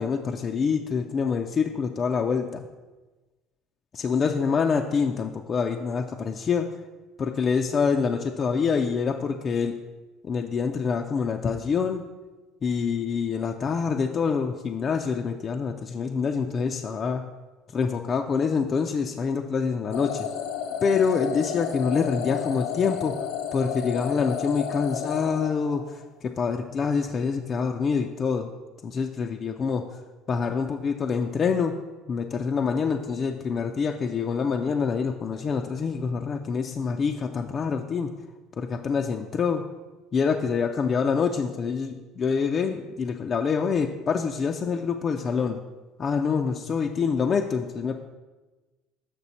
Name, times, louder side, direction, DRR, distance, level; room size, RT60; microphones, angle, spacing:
voice 1, 0.0-2.6 3.9-6.7 7.2-9.7 10.2-12.0 12.6-17.2 17.7-20.3 20.8-23.2 23.5-28.5 28.8-29.9 30.3-31.8 32.1-38.1 38.6-39.6 40.1-45.6 46.0-48.0, left 5 dB, 40° left, 4 dB, 0.5 m, -26 dB
sound 1, 19.9-26.0, left 8 dB, 85° left, 0.7 m, -32 dB
7.0 x 5.9 x 4.2 m, 1.2 s
supercardioid pair, 90°, 0 cm